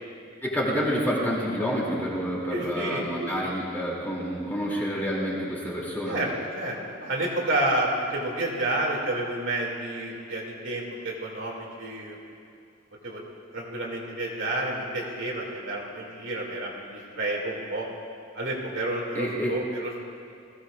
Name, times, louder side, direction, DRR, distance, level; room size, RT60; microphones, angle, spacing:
voice 1, 0.4-6.2 19.1-19.5, equal, 10° left, -6 dB, 2.9 m, -28 dB
voice 2, 2.5-3.5 6.1-12.2 13.0-13.2 13.5-17.9 18.3-20.0, right 1 dB, 65° right, -3 dB, 2.7 m, -30 dB
20.5 x 16.0 x 2.5 m, 2.5 s
head